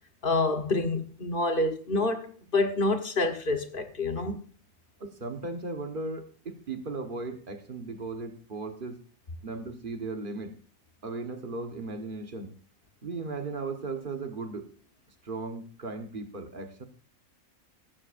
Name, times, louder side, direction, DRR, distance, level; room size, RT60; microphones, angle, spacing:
voice 1, 0.2-4.4, left 2 dB, 40° left, 1.4 m, -27 dB
voice 2, 5.0-9.0 9.4-10.6 11.0-12.6 13.0-14.7 15.2-16.8, right 3 dB, 40° right, 1.5 m, -36 dB
16.0 x 14.0 x 2.6 m
omnidirectional pair, 1.5 m